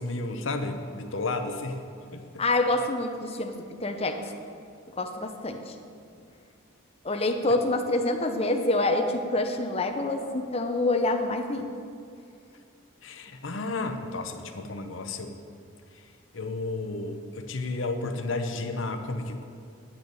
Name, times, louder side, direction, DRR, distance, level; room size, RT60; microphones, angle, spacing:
voice 1, 0.0-1.8 2.1-2.4 13.0-15.4 16.3-19.4, left 2 dB, 65° left, 6 dB, 0.9 m, -32 dB
voice 2, 2.4-4.3 4.9-5.7 7.0-11.7, left 2 dB, 30° left, 4 dB, 0.8 m, -27 dB
9.9 x 6.7 x 8.7 m, 2.3 s
head